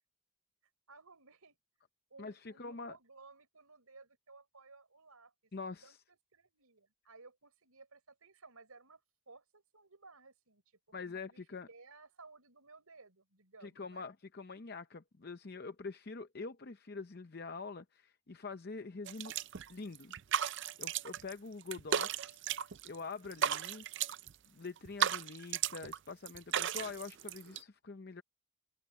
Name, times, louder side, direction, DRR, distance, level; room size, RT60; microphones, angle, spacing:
voice 1, 0.9-1.6 2.1-5.3 5.8-9.0 9.3-11.0 11.3-11.4 11.7-14.1, right 3 dB, 80° right, 4.7 m, -58 dB
voice 2, 2.2-3.0 5.5-6.0 10.9-11.7 13.6-19.3 19.7-20.1 20.8-22.4 22.8-23.8 24.5-28.2, left 4 dB, 45° left, 0.6 m, -45 dB
sound 1, 19.1-19.7 20.0-21.3 21.6-23.0 23.3-24.3 24.8-26.0 26.3-27.6, right 9 dB, 50° right, 0.5 m, -35 dB
head